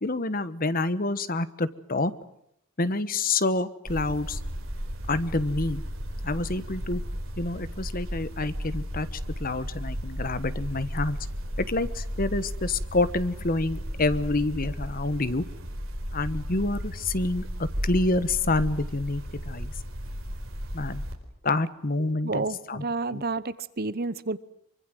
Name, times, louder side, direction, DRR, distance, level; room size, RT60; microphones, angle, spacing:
voice 1, 0.0-2.1 2.8-4.4 5.1-5.8 6.2-7.0 7.4-11.2 11.6-15.4 16.1-19.7 20.7-21.0 21.4-22.8 23.1-23.2, left 2 dB, 40° left, 1.2 m, -28 dB
sound 1, 3.9-21.1, equal, 65° right, 4.7 m, -34 dB
voice 2, 22.0-24.4, right 3 dB, 45° right, 0.9 m, -30 dB
25.0 x 24.5 x 7.8 m
head